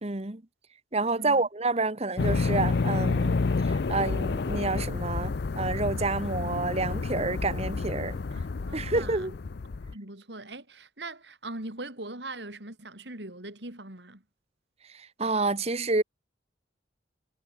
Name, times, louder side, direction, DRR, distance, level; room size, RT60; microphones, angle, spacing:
voice 1, 0.0-0.4 0.9-3.3 3.6-8.2 8.7-9.3 15.2-16.0, right 3 dB, 35° right, 1.4 m, -28 dB
voice 2, 1.1-1.5 8.3-9.3 9.9-14.2, right 2 dB, 65° right, 4.5 m, -41 dB
sound 1, 2.2-9.9, left 4 dB, 60° left, 0.5 m, -29 dB
head